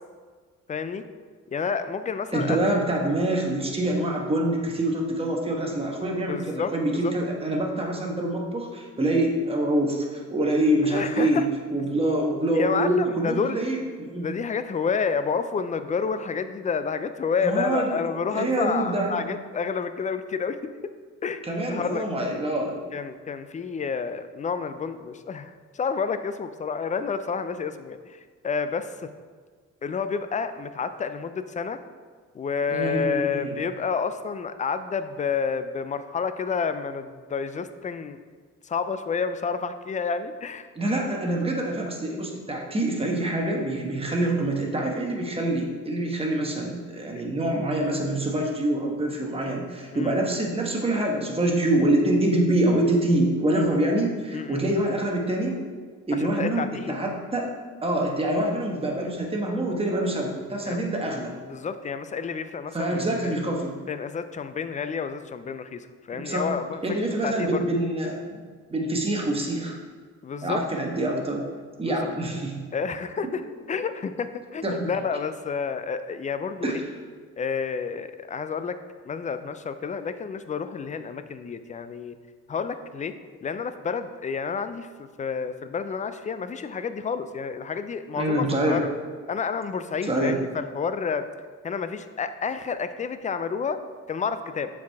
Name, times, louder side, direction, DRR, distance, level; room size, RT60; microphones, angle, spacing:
voice 1, 0.7-1.1 1.5-2.6 6.3-7.1 10.9-11.5 12.5-13.6 14.2-20.6 21.2-22.0 22.9-29.1 29.8-31.8 32.3-38.2 38.6-40.7 49.9-50.1 53.5-53.7 54.3-54.6 56.1-56.9 60.6-60.8 61.4-63.3 63.9-67.6 70.2-70.6 71.8-72.0 72.7-73.4 73.7-76.8 77.4-78.7 79.0-82.2 82.5-83.1 83.4-88.9 89.3-91.3 91.6-93.8 94.1-94.7, left 5 dB, 25° left, 11 dB, 0.4 m, -29 dB
voice 2, 2.3-11.4 11.7-14.3 17.4-18.0 18.3-19.2 21.4-22.8 32.7-33.6 40.7-55.6 56.1-57.5 57.8-61.3 62.7-63.8 66.1-66.5 66.8-68.4 68.7-69.8 70.4-71.4 71.8-72.6 74.6-74.9 76.6-76.8 88.1-88.8 90.1-90.4, right 1 dB, 20° right, 0 dB, 1.2 m, -25 dB
7.3 x 4.7 x 3.5 m, 1.5 s
cardioid pair, 90°, 30 cm